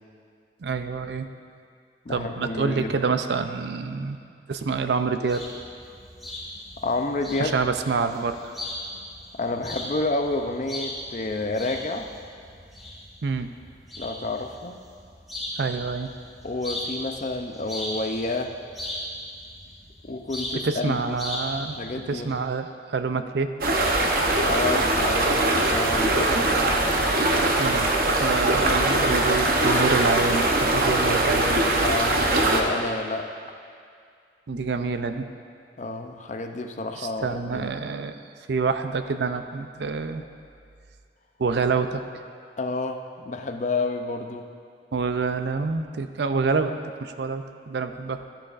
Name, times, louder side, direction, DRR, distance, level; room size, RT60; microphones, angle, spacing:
voice 1, 0.6-1.3 2.1-4.2 4.5-5.4 7.4-8.5 13.2-13.5 15.6-16.1 20.6-21.8 22.1-23.5 27.6-27.9 28.2-31.6 34.5-35.3 37.0-38.2 38.5-40.2 41.4-42.0 44.9-46.7 47.0-48.3, right 4 dB, 70° right, 9 dB, 0.5 m, -27 dB
voice 2, 2.1-2.9 6.8-7.6 9.4-12.1 14.0-14.8 16.4-18.6 20.0-21.0 21.8-22.4 24.4-26.4 28.3-29.3 30.9-31.0 31.8-33.5 35.8-37.7 42.6-44.5, left 2 dB, 40° left, 5 dB, 0.5 m, -30 dB
sound 1, 5.3-22.3, left 1 dB, ahead, 2.5 m, -38 dB
sound 2, 23.6-32.6, right 2 dB, 55° right, 0.8 m, -22 dB
13.5 x 10.0 x 2.5 m, 2.3 s
head